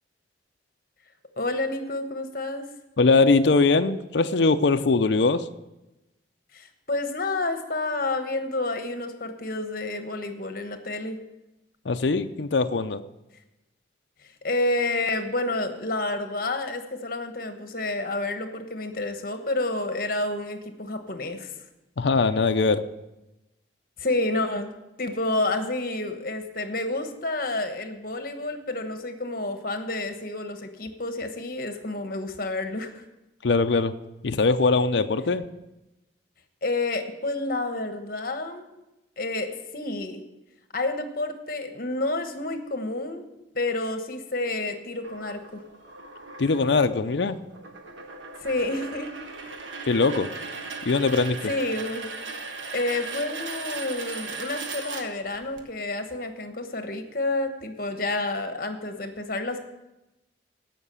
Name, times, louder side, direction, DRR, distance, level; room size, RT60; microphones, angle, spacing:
voice 1, 1.4-2.6 6.5-11.2 14.2-21.5 24.0-24.7 25.0-33.0 36.6-38.7 39.2-40.2 40.7-43.2 43.5-45.6 48.4-49.1 51.4-52.1 52.5-59.6, left 2 dB, 50° left, 7 dB, 1.2 m, -29 dB
voice 2, 3.0-5.5 11.9-13.0 22.0-22.9 33.4-34.0 34.2-35.4 46.4-47.4 49.9-50.4 50.8-51.5, left 3 dB, 70° left, 8 dB, 0.5 m, -21 dB
sound 1, 45.0-55.6, right 4 dB, 85° right, 1.4 m, -38 dB
17.0 x 5.9 x 6.9 m, 0.97 s
head